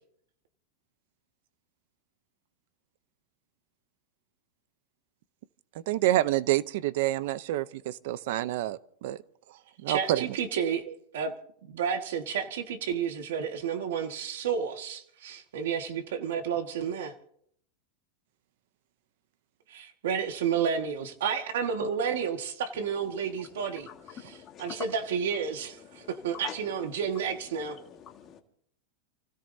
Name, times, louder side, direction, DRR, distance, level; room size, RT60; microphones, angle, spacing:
voice 1, 5.9-9.2 9.8-10.3 10.9-11.0, right 15 dB, 50° right, 16 dB, 0.7 m, -28 dB
voice 2, 9.9-10.8 11.1-11.3 11.7-17.1 19.7-23.9 24.3-24.4 24.6-27.8, right 7 dB, 75° right, 6 dB, 1.7 m, -31 dB
voice 3, 23.3-24.9 25.8-26.6 27.5-28.4, left 9 dB, 20° left, 2 dB, 1.7 m, -45 dB
29.5 x 16.5 x 2.8 m, 0.67 s
supercardioid pair, 180°, 0 cm